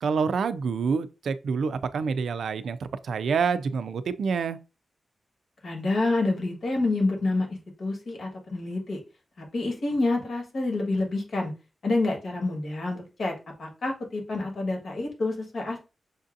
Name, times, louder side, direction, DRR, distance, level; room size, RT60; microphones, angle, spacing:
voice 1, 0.0-2.8 3.0-4.6, right 5 dB, 85° right, 0.4 m, -27 dB
voice 2, 5.6-7.5 7.8-9.0 9.5-11.5 11.8-13.3 13.6-15.8, left 2 dB, 60° left, 1.4 m, -27 dB
6.4 x 2.6 x 2.5 m
wide cardioid pair, 175°, 0 cm